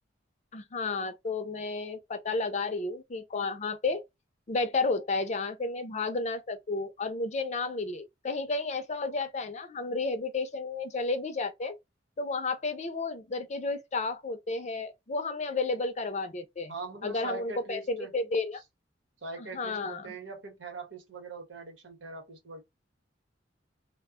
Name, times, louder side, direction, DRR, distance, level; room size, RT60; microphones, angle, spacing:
voice 1, 0.5-4.0 4.5-11.8 12.2-16.7 17.0-18.6 19.4-20.1, left 3 dB, 40° left, 0.5 m, -32 dB
voice 2, 16.7-18.1 19.2-22.6, right 3 dB, 90° right, 1.0 m, -41 dB
2.1 x 2.1 x 3.5 m
head